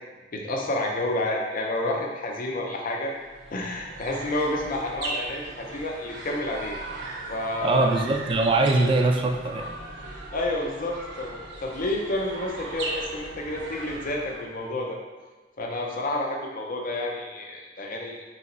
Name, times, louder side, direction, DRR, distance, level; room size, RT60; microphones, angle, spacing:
voice 1, 0.3-3.1 3.5-6.8 7.3-7.9 10.1-15.0 15.6-18.2, left 1 dB, 50° left, 0 dB, 0.5 m, -30 dB
sound 1, 3.1-14.7, right 2 dB, 70° right, 0.6 m, -38 dB
voice 2, 7.6-9.7, right 2 dB, 30° right, 4 dB, 0.3 m, -22 dB
3.4 x 2.9 x 4.0 m, 1.3 s
head